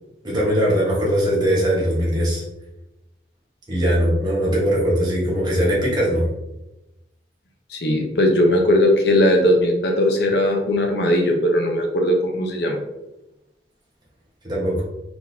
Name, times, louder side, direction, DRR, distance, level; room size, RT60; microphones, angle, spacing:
voice 1, 0.2-2.4 3.7-6.2 14.4-14.8, equal, 25° right, -5 dB, 1.3 m, -20 dB
voice 2, 7.7-12.8, left 1 dB, 70° left, 2 dB, 0.9 m, -18 dB
4.4 x 3.9 x 2.8 m, 0.94 s
head